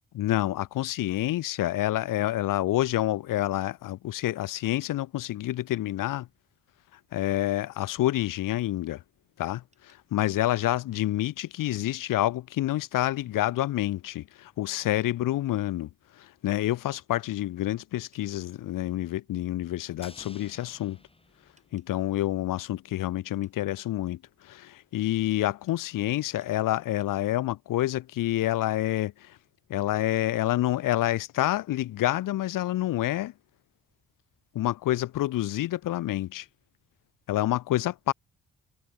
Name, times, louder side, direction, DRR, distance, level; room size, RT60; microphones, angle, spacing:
voice 1, 0.1-6.3 7.1-9.0 9.4-15.9 16.2-21.0 21.7-24.2 24.4-29.3 29.7-33.3 34.5-36.5 37.3-38.1, left 14 dB, 60° left, 0.7 m, -28 dB
sound 1, 9.7-11.4 11.8-12.0 13.2-13.3 15.0-15.1 16.5-16.6 18.1-18.3 20.7-20.8 21.6-21.9 23.4-23.7 25.3-25.8 26.4-26.6 27.0-27.1, right 2 dB, 20° right, 7.9 m, -67 dB
sound 2, 20.0-22.4 22.7-22.8, left 2 dB, 15° left, 5.2 m, -53 dB
hypercardioid pair, 50°, 37 cm